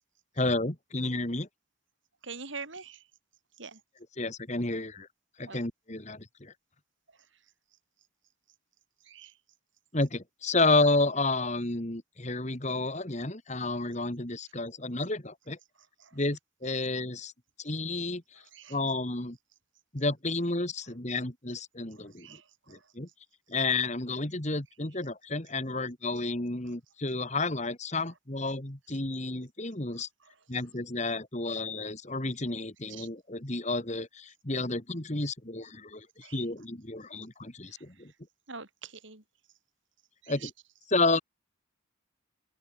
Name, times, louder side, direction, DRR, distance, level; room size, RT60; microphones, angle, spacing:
voice 1, 0.4-1.5 4.2-5.1 5.4-6.5 9.9-15.6 16.1-17.3 17.6-18.4 18.7-19.4 19.9-22.4 22.7-23.1 23.5-30.1 30.5-38.1 40.3-40.5 40.9-41.2, left 2 dB, 35° left, 2.1 m, -31 dB
voice 2, 2.2-3.0 3.6-3.8 5.5-5.6 9.1-9.3 18.5-18.8 22.2-22.4 32.9-33.1 36.2-36.4 38.5-39.2 40.2-40.5, right 5 dB, 65° right, 3.8 m, -43 dB
head